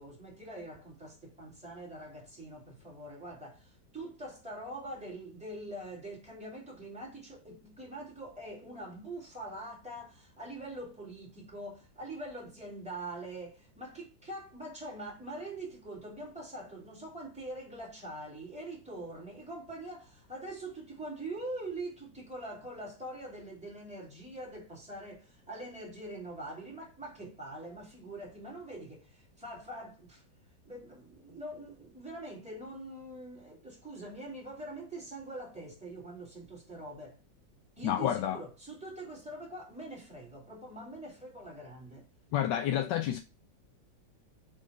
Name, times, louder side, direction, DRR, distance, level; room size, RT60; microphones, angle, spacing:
voice 1, 0.0-30.2 30.6-37.2 37.8-42.1, right 1 dB, 5° right, 2.8 m, -44 dB
voice 2, 37.8-38.4 42.3-43.2, left 11 dB, 80° left, 1.3 m, -29 dB
5.0 x 3.7 x 5.2 m
omnidirectional pair, 2.0 m